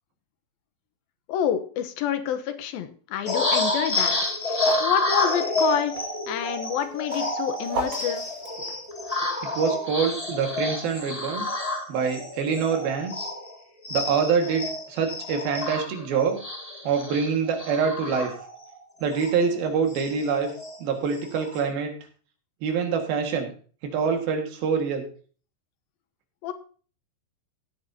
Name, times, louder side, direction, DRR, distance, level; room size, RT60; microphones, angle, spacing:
voice 1, 1.3-4.2 4.8-8.2 26.4-26.5, left 9 dB, 80° left, 10 dB, 2.8 m, -28 dB
sound 1, 3.3-13.6 13.8-18.7 19.1-19.3 19.6-20.8 21.1-21.6, left 2 dB, 15° left, 1.7 m, -29 dB
sound 2, 3.6-5.8 6.7-9.1, right 2 dB, 55° right, 3.2 m, -35 dB
voice 2, 9.6-11.5 11.9-13.3 13.9-16.4 16.9-18.3 19.0-20.5 20.8-21.9 22.6-23.5 23.8-25.1, right 6 dB, 90° right, 4 dB, 3.7 m, -25 dB
16.5 x 8.9 x 2.8 m, 0.41 s
omnidirectional pair, 4.1 m